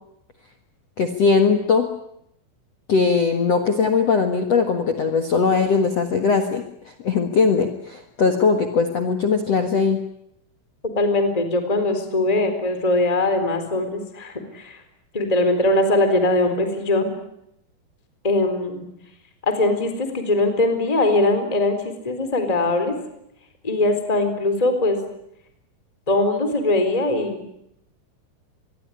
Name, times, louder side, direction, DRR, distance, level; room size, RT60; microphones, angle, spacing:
voice 1, 1.0-1.9 2.9-10.0, left 5 dB, 65° left, 6 dB, 1.6 m, -20 dB
voice 2, 10.8-14.8 15.1-17.1 18.2-18.9 19.4-22.9 23.6-25.0 26.1-27.5, left 2 dB, 10° left, 8 dB, 3.4 m, -21 dB
26.0 x 22.0 x 10.0 m, 0.79 s
omnidirectional pair, 5.5 m